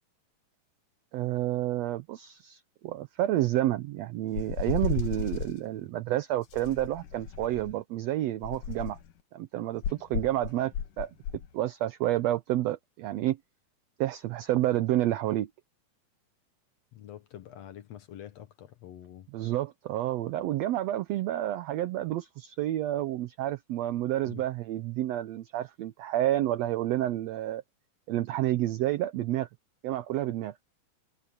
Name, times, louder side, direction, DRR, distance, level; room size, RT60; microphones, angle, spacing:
voice 1, 1.1-9.0 9.3-11.1 11.5-13.4 14.0-15.5 19.3-27.6 28.1-29.5 29.8-30.6, right 14 dB, 75° right, 1.6 m, -29 dB
sound 1, 4.3-5.6 6.5-7.8 8.4-9.1 9.8-11.5, left 8 dB, 85° left, 3.1 m, -34 dB
voice 2, 16.9-19.3 24.2-24.4, left 11 dB, 65° left, 1.9 m, -46 dB
omnidirectional pair, 3.7 m